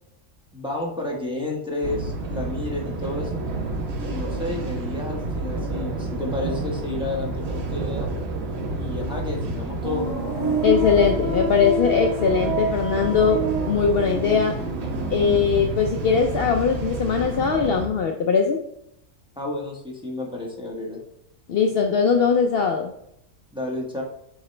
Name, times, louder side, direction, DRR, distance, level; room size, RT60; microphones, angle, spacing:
voice 1, 0.5-3.4 4.0-8.1 8.8-10.1 19.4-21.0 23.5-24.0, left 2 dB, 5° right, -3 dB, 1.1 m, -31 dB
sound 1, 1.8-17.9, right 3 dB, 60° right, 1.1 m, -30 dB
sound 2, 9.8-16.7 16.9-17.7, right 2 dB, 80° right, 1.6 m, -29 dB
voice 2, 10.6-14.6 15.1-18.6 21.5-22.9, left 6 dB, 60° left, 3 dB, 0.7 m, -20 dB
8.0 x 3.9 x 3.2 m, 0.77 s
omnidirectional pair, 1.3 m